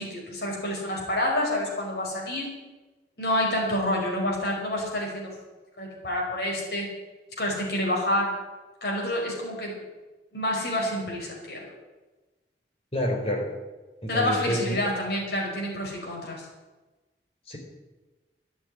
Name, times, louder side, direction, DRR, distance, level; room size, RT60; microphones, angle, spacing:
voice 1, 0.0-2.5 3.2-5.3 5.8-6.9 7.4-8.3 8.8-9.8 10.3-11.7 14.1-16.5, left 1 dB, 70° left, -2 dB, 5.6 m, -28 dB
voice 2, 12.9-13.4 14.0-14.8 17.5-17.6, equal, 35° left, 0 dB, 4.1 m, -28 dB
13.5 x 9.8 x 9.8 m, 1.2 s
head